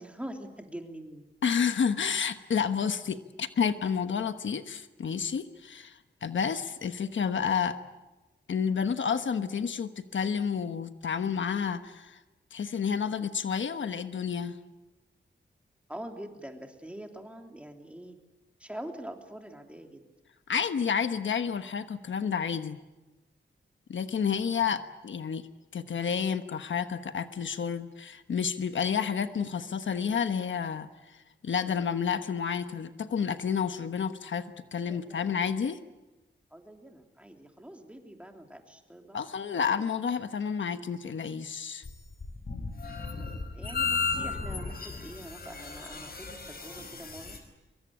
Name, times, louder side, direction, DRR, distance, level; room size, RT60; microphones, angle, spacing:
voice 1, 0.0-1.3 15.9-18.2 18.6-20.0 34.8-35.4 36.5-39.2 43.5-47.4, right 1 dB, 5° right, 3 dB, 3.2 m, -44 dB
voice 2, 1.4-7.8 8.5-12.2 12.5-14.6 20.5-22.8 23.9-35.8 39.1-41.8, left 7 dB, 80° left, 9 dB, 1.2 m, -30 dB
sound 1, 41.8-47.4, left 4 dB, 50° left, 5.2 m, -34 dB
24.5 x 23.0 x 8.7 m, 1.1 s
wide cardioid pair, 115°, 20 cm